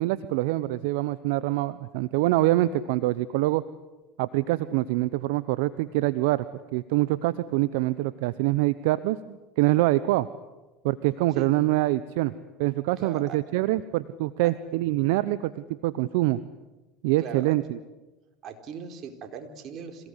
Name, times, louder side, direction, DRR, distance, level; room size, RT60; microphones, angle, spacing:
voice 1, 0.0-3.6 4.2-6.5 6.7-10.3 10.8-12.3 12.6-16.4 17.0-17.8, right 17 dB, 75° right, 15 dB, 0.8 m, -25 dB
voice 2, 13.0-13.4 14.4-14.5 17.2-17.6 18.4-20.1, right 7 dB, 50° right, 5 dB, 4.4 m, -39 dB
26.5 x 18.0 x 9.9 m, 1.1 s
hypercardioid pair, 90°, 0 cm